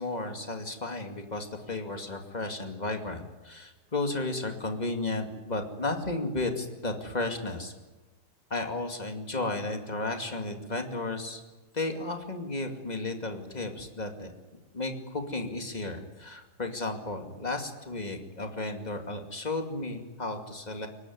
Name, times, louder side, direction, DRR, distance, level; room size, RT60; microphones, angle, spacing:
voice 1, 0.0-7.7 8.5-11.4 11.7-14.3 14.7-20.9, left 2 dB, 20° left, 4 dB, 2.4 m, -33 dB
22.5 x 19.0 x 9.6 m, 1.2 s
omnidirectional pair, 2.0 m